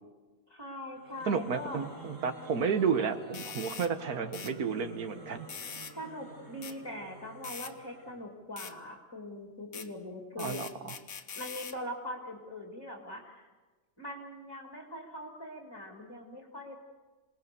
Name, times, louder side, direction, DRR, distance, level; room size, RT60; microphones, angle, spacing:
voice 1, 0.5-1.9 5.9-10.9 11.4-13.5 14.0-16.8, left 1 dB, 15° left, 1 dB, 2.3 m, -42 dB
sound 1, 0.9-8.3, right 3 dB, 55° right, 3.6 m, -50 dB
voice 2, 1.3-5.7 10.4-11.0, right 6 dB, 70° right, 8 dB, 1.7 m, -32 dB
sound 2, 3.3-3.9 4.3-4.5 5.5-6.0 6.6-6.8 7.4-7.7 8.6-8.7 9.7-9.9 10.4-11.8, left 6 dB, 65° left, 1.6 m, -42 dB
27.5 x 19.0 x 6.8 m, 1.3 s
omnidirectional pair, 1.6 m